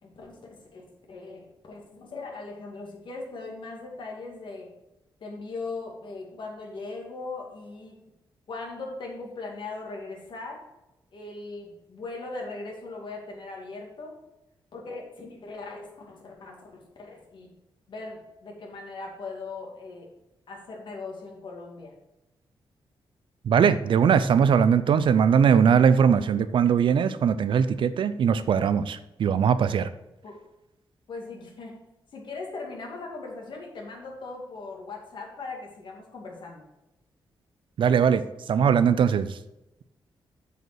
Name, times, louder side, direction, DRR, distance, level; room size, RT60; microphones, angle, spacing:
voice 1, 0.0-4.7 5.2-8.0 8.5-10.6 11.1-14.2 14.7-17.5 17.9-20.1 20.5-21.9 30.2-30.4 31.1-31.8 32.1-36.6, left 3 dB, 60° left, 0 dB, 2.4 m, -39 dB
voice 2, 23.4-29.9 37.8-39.4, right 7 dB, 70° right, 13 dB, 0.5 m, -21 dB
7.8 x 5.1 x 6.2 m, 0.93 s
cardioid pair, 110°, 9 cm